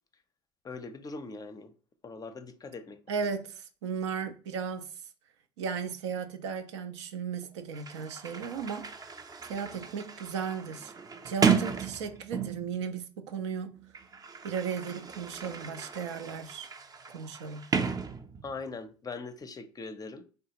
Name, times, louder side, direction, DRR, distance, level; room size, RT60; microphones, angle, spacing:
voice 1, 0.6-1.7 2.0-3.2 18.4-20.2, left 4 dB, 25° left, 0.5 m, -41 dB
voice 2, 3.1-4.9 5.6-8.9 9.5-10.9 11.2-13.8 14.4-16.7 17.1-17.7, right 6 dB, 85° right, 0.4 m, -35 dB
Sliding door, 7.4-7.5 7.7-12.8 13.7-18.7, right 6 dB, 25° right, 0.5 m, -34 dB
3.4 x 2.4 x 2.8 m
hypercardioid pair, 65°, 15 cm